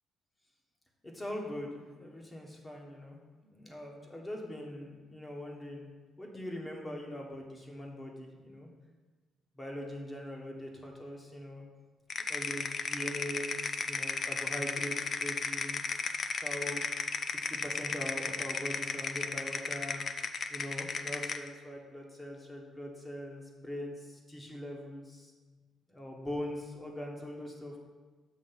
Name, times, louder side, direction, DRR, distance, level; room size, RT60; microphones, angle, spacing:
voice 1, 1.0-5.9 6.2-8.7 9.6-11.6 12.3-16.8 17.3-20.0 20.5-25.3 25.9-27.7, left 1 dB, 20° left, 0 dB, 1.3 m, -42 dB
sound 1, 12.1-21.5, left 5 dB, 45° left, 0.4 m, -34 dB
7.4 x 3.0 x 5.7 m, 1.4 s
cardioid pair, 90°, 0 cm